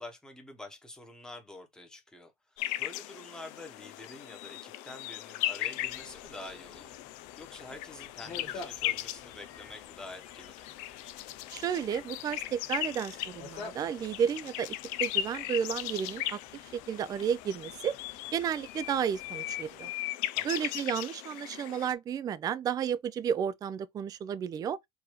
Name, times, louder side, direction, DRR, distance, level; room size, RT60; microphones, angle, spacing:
voice 1, 0.0-7.0 7.4-10.5 20.3-20.7, left 2 dB, 5° left, 1.1 m, -47 dB
sound 1, 2.6-21.9, left 15 dB, 85° left, 0.5 m, -38 dB
sound 2, 5.8-19.9, left 4 dB, 55° left, 1.6 m, -52 dB
voice 2, 11.5-14.7 15.0-16.4 16.7-18.0 18.3-19.9 20.4-24.8, right 8 dB, 30° right, 0.3 m, -32 dB
4.7 x 2.6 x 3.0 m
cardioid pair, 130°, 12 cm